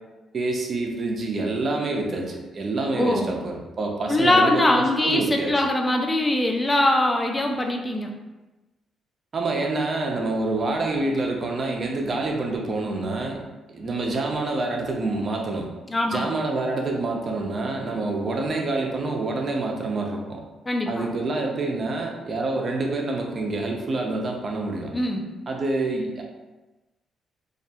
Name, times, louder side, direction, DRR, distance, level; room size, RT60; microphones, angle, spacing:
voice 1, 0.3-5.5 9.3-13.4 13.7-15.7 16.1-20.4 20.9-24.9 25.5-26.2, right 2 dB, 45° right, 1 dB, 0.5 m, -27 dB
voice 2, 3.0-3.3 4.1-8.1 15.9-16.2 20.7-21.1 24.9-25.2, left 1 dB, 20° left, 2 dB, 0.4 m, -22 dB
2.4 x 2.2 x 2.7 m, 1.1 s
cardioid pair, 100°, 0 cm